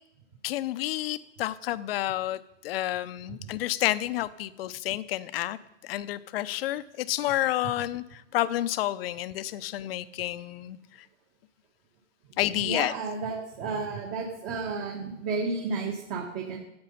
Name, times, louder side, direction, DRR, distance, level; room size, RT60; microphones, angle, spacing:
voice 1, 0.4-2.4 2.6-5.6 5.9-10.8 12.4-12.9, left 14 dB, 50° left, 14 dB, 0.7 m, -30 dB
voice 2, 12.6-16.6, right 4 dB, 30° right, -1 dB, 1.9 m, -32 dB
14.0 x 8.9 x 5.7 m, 0.85 s
hypercardioid pair, 140°, 38 cm